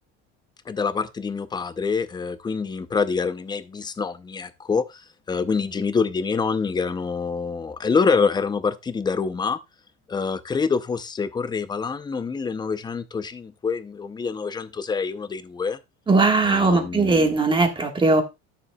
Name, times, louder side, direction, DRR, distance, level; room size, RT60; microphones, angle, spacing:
voice 1, 0.7-4.8 5.3-9.6 10.1-15.8 16.4-17.3, left 5 dB, 15° left, 0.6 m, -26 dB
voice 2, 16.1-18.2, right 3 dB, 15° right, 1.5 m, -19 dB
12.5 x 7.0 x 2.3 m
cardioid pair, 150°, 30 cm